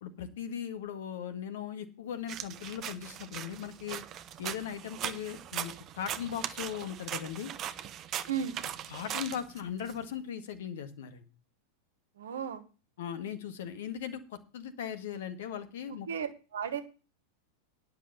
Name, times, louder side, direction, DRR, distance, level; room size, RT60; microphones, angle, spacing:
voice 1, 0.0-4.0 4.4-7.5 8.9-11.2 13.0-16.1, left 9 dB, 55° left, 10 dB, 1.8 m, -38 dB
sound 1, 2.3-9.9, right 10 dB, 30° right, 0.8 m, -40 dB
voice 2, 8.3-8.6 12.2-12.6 16.1-16.8, right 7 dB, 65° right, 11 dB, 1.3 m, -34 dB
10.0 x 6.7 x 6.8 m, 0.34 s
figure-of-eight pair, 90°, 0 cm